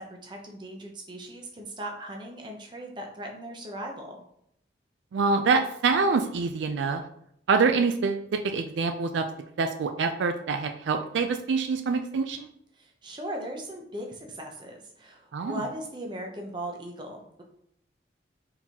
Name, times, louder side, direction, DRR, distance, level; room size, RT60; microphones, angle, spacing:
voice 1, 0.2-4.2 12.8-17.4, right 1 dB, 25° right, 1 dB, 0.7 m, -38 dB
voice 2, 5.1-7.0 7.5-9.3 9.6-12.5 15.3-15.6, right 4 dB, 70° right, 7 dB, 0.3 m, -25 dB
4.5 x 3.8 x 2.8 m, 0.71 s
head